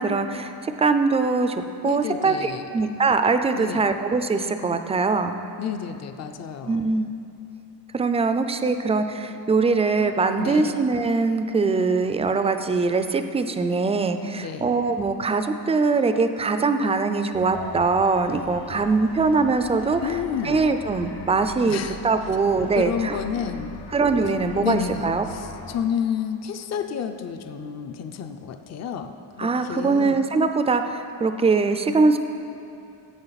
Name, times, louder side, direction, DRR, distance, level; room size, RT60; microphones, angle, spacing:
voice 1, 0.0-1.6 1.8-5.4 6.7-7.1 7.9-20.0 20.4-23.2 23.9-25.2 29.4-32.2, right 4 dB, 15° right, 8 dB, 0.3 m, -22 dB
voice 2, 1.8-2.7 3.5-3.9 5.6-7.0 10.4-10.7 14.3-14.7 20.0-20.6 21.7-22.0 22.8-23.8 24.6-30.2, left 8 dB, 40° left, 7 dB, 0.5 m, -30 dB
sound 1, 17.3-25.8, left 5 dB, 80° left, 0.9 m, -41 dB
16.5 x 8.3 x 4.0 m, 2.7 s
cardioid pair, 155°, 39 cm